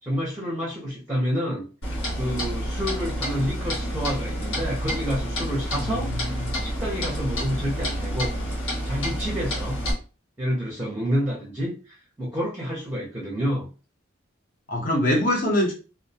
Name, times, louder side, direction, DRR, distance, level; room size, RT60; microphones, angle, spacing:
voice 1, 0.0-1.6 2.2-8.3 8.8-9.8 10.4-13.7, equal, 10° right, -4 dB, 0.6 m, -29 dB
Clock, 1.8-9.9, equal, 80° left, 1.2 m, -29 dB
voice 2, 5.8-6.6 14.7-15.7, left 1 dB, 45° left, 0 dB, 0.7 m, -24 dB
2.3 x 2.1 x 2.7 m, 0.34 s
head